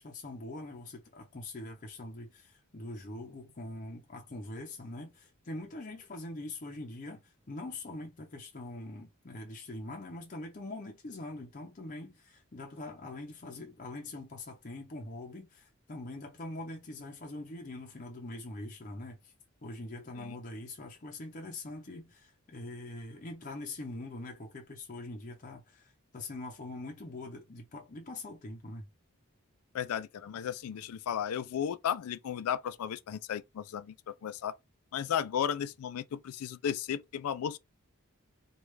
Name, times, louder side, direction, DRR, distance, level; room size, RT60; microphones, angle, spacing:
voice 1, 0.0-19.3 19.6-28.9, left 2 dB, 35° left, 0.6 m, -43 dB
voice 2, 29.7-34.6 34.9-37.6, left 8 dB, 80° left, 0.3 m, -34 dB
3.2 x 2.4 x 3.1 m
head